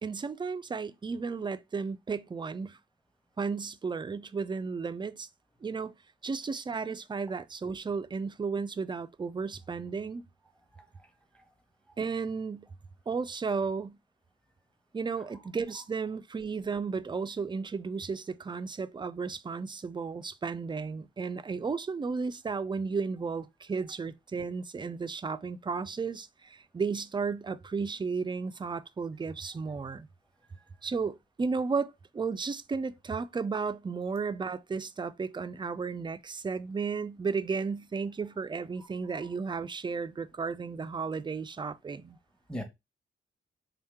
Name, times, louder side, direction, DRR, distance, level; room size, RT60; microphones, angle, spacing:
voice 1, 0.0-2.8 3.4-5.3 5.6-6.0 6.2-10.2 12.0-12.7 13.1-14.0 14.9-30.1 30.8-42.2, right 5 dB, 20° right, 0.4 m, -34 dB
voice 2, 10.7-11.4 15.2-15.3 15.7-15.8 38.8-39.3 42.5-42.6, equal, 5° left, 1.0 m, -44 dB
3.8 x 2.8 x 3.5 m
cardioid pair, 85°, 21 cm